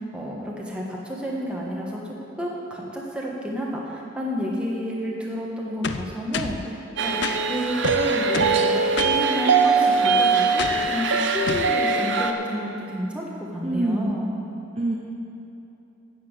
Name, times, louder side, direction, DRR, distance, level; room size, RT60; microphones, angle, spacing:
voice 1, 0.1-6.8 7.0-14.3, equal, 5° right, -4 dB, 1.4 m, -30 dB
sound 1, 5.8-6.6 7.2-7.4 7.8-8.6 9.0-9.2 10.6-10.9 11.5-11.7, left 5 dB, 60° left, 0.5 m, -29 dB
sound 2, 7.0-12.3, right 4 dB, 70° right, 0.7 m, -21 dB
voice 2, 13.6-14.1 14.7-14.9, right 2 dB, 30° right, -2 dB, 0.8 m, -25 dB
9.4 x 7.1 x 8.0 m, 2.9 s
head